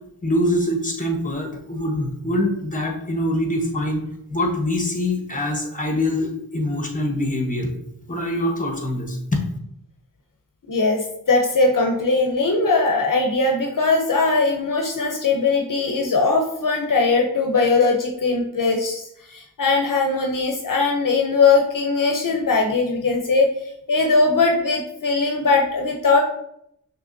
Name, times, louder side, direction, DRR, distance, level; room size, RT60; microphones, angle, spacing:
voice 1, 0.2-4.0 4.3-7.7 8.1-9.4, left 1 dB, 20° left, 2 dB, 1.0 m, -24 dB
voice 2, 10.7-23.5 23.9-26.2, left 3 dB, 65° left, 2 dB, 0.7 m, -20 dB
5.7 x 3.2 x 2.6 m, 0.75 s
wide cardioid pair, 55°, 35 cm